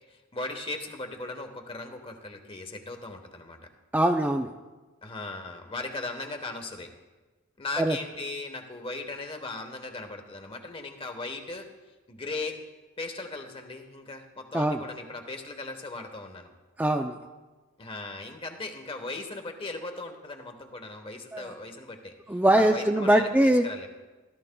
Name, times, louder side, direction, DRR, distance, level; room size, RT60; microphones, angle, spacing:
voice 1, 0.1-3.6 5.0-6.9 7.6-11.6 12.1-12.6 13.0-16.5 17.8-22.1 22.5-23.9, left 3 dB, 30° left, 5 dB, 1.1 m, -38 dB
voice 2, 3.9-4.5 7.8-8.0 14.5-14.8 16.8-17.2 21.3-21.5 22.3-23.6, right 1 dB, 10° right, 3 dB, 0.4 m, -22 dB
17.0 x 12.5 x 2.3 m, 1.2 s
head